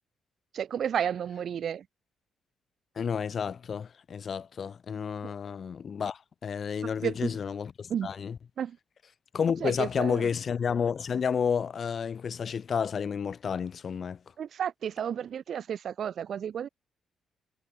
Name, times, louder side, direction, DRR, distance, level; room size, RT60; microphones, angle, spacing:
voice 1, 0.5-1.8 5.2-5.3 6.8-7.4 7.9-8.1 8.6-8.8 9.6-10.3 14.4-16.7, right 8 dB, 60° right, 1.5 m, -32 dB
voice 2, 3.0-8.4 9.3-14.2, left 6 dB, 50° left, 1.3 m, -31 dB
cardioid pair, 90°, 0 cm